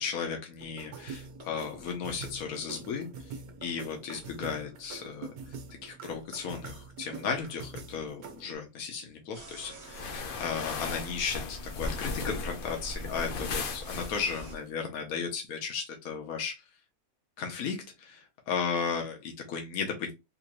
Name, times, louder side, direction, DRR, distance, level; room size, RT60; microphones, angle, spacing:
voice 1, 0.0-5.5 5.8-16.7 17.4-20.1, left 6 dB, 75° left, 1.3 m, -35 dB
sound 1, 0.6-8.5, right 5 dB, 85° right, 1.2 m, -45 dB
sound 2, 9.3-14.6, right 2 dB, 55° right, 1.1 m, -48 dB
sound 3, 9.9-14.5, left 3 dB, 55° left, 0.6 m, -36 dB
3.8 x 2.6 x 3.0 m
omnidirectional pair, 1.5 m